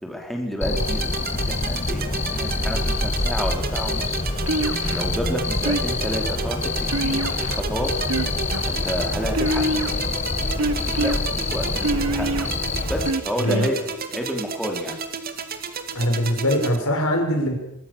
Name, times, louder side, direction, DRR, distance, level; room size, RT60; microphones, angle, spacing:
voice 1, 0.0-4.2 4.9-7.9 8.7-9.6 11.0-12.5 12.9-15.0, equal, ahead, 1 dB, 3.7 m, -30 dB
Cricket, 0.6-13.1, left 3 dB, 30° left, 1.3 m, -26 dB
sound 1, 0.8-16.8, right 5 dB, 45° right, 2.3 m, -33 dB
sound 2, 4.5-5.1 5.6-6.2 6.9-7.6 8.0-8.7 9.3-10.0 10.6-11.2 11.8-12.5 13.0-13.7, right 1 dB, 75° right, 1.7 m, -25 dB
voice 2, 13.4-13.7 15.9-17.6, equal, 70° left, 3 dB, 6.5 m, -22 dB
23.5 x 23.0 x 7.1 m, 0.80 s
head